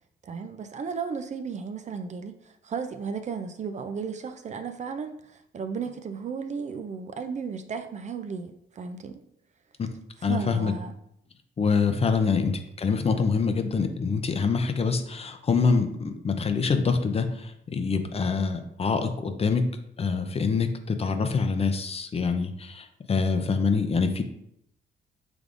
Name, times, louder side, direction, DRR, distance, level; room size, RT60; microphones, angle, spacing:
voice 1, 0.2-9.2 10.2-10.9, right 5 dB, 35° right, 9 dB, 0.4 m, -34 dB
voice 2, 10.2-10.7 11.6-19.6 20.0-24.2, left 5 dB, 30° left, 7 dB, 0.5 m, -25 dB
5.1 x 3.4 x 2.5 m, 0.75 s
cardioid pair, 90°, 20 cm